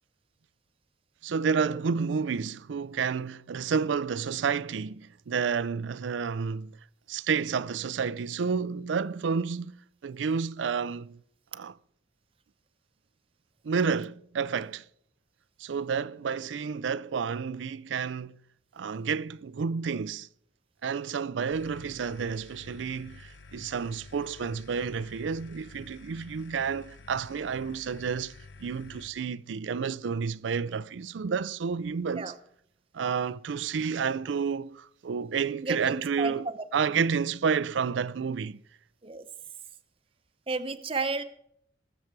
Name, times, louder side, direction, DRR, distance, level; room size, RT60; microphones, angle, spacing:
voice 1, 1.2-6.7 7.1-11.2 11.5-11.8 13.6-14.8 15.6-18.4 18.8-20.3 20.8-32.3 32.9-38.6, right 6 dB, 90° right, 0.4 m, -30 dB
sound 1, 21.5-29.1, left 3 dB, 90° left, 1.0 m, -50 dB
voice 2, 35.6-36.7 39.0-39.2 40.5-41.2, right 3 dB, 30° right, 0.7 m, -32 dB
21.0 x 7.2 x 4.6 m
head